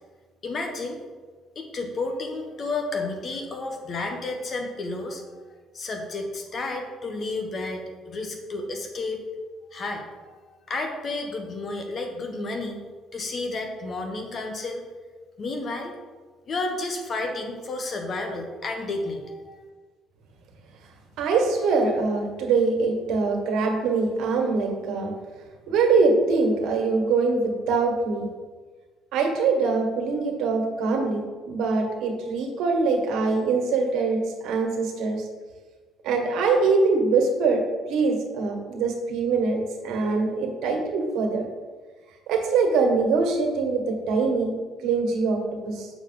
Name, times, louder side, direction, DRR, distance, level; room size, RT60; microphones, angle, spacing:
voice 1, 0.4-1.0 1.5-5.4 5.7-9.2 9.7-12.8 13.1-14.8 15.4-15.9 16.5-19.6, left 2 dB, 45° left, 3 dB, 1.4 m, -31 dB
voice 2, 21.2-25.1 25.7-28.3 29.1-35.3 36.0-37.6 37.9-41.4 42.3-44.5 44.8-45.9, right 4 dB, 75° right, 2 dB, 1.5 m, -23 dB
7.3 x 6.1 x 4.0 m, 1.4 s
cardioid pair, 95°, 0 cm